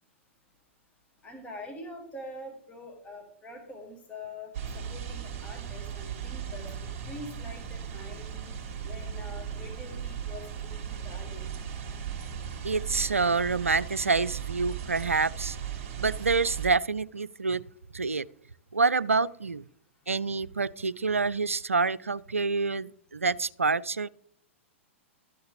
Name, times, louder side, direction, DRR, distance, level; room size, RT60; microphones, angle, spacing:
voice 1, 1.2-6.7 7.1-8.5 8.8-11.5, left 1 dB, 20° left, 2.3 m, -44 dB
sound 1, 4.5-16.7, right 8 dB, 40° right, 2.3 m, -37 dB
voice 2, 12.6-15.6 16.0-17.6 17.9-18.3 18.7-19.6 20.1-24.1, right 4 dB, 85° right, 0.4 m, -27 dB
13.0 x 7.9 x 3.4 m
figure-of-eight pair, 105°, 7 cm